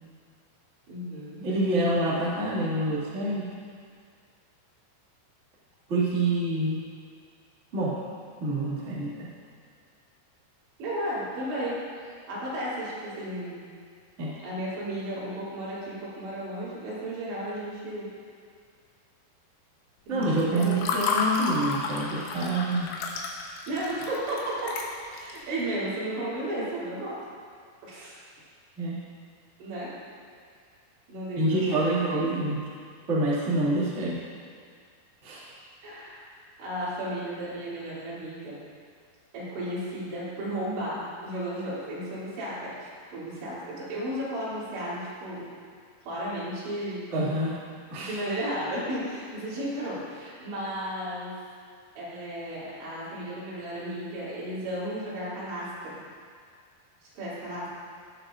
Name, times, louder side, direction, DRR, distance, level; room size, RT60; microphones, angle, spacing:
voice 1, 0.9-1.4 10.8-13.6 14.4-18.1 20.1-20.3 20.5-21.1 23.7-24.7 25.1-27.2 27.8-28.2 29.6-29.9 31.1-32.4 35.8-38.6 39.3-45.5 46.1-47.1 48.0-51.3 52.0-56.0 57.0-57.7, right 1 dB, 85° right, -9 dB, 5.1 m, -34 dB
voice 2, 1.4-3.5 5.9-6.8 7.7-8.0 8.4-9.3 14.2-14.3 20.1-22.9 28.8-29.0 31.3-32.6 33.1-34.2 35.2-35.6 47.1-47.6 47.9-48.2, right 1 dB, 30° right, -8 dB, 1.3 m, -27 dB
Water / Fill (with liquid), 20.2-25.4, left 4 dB, 85° left, 3.2 m, -31 dB
17.5 x 8.3 x 2.5 m, 2.1 s
omnidirectional pair, 5.1 m